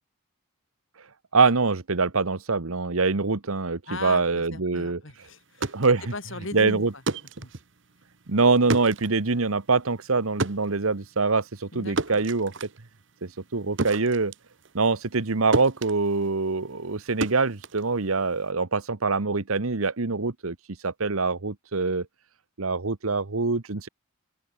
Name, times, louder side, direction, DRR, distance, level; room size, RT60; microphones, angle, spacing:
voice 1, 1.3-5.0 5.7-6.0 6.5-6.9 8.3-12.5 13.2-14.3 14.7-20.6 20.8-22.1 22.6-23.9, right 4 dB, 80° right, 1.2 m, -24 dB
voice 2, 3.8-5.8 6.1-7.0 7.4-7.5 11.7-12.2, left 2 dB, 65° left, 6.6 m, -38 dB
sound 1, 5.4-15.3 15.5-18.5, right 3 dB, 55° right, 1.2 m, -33 dB
open air
head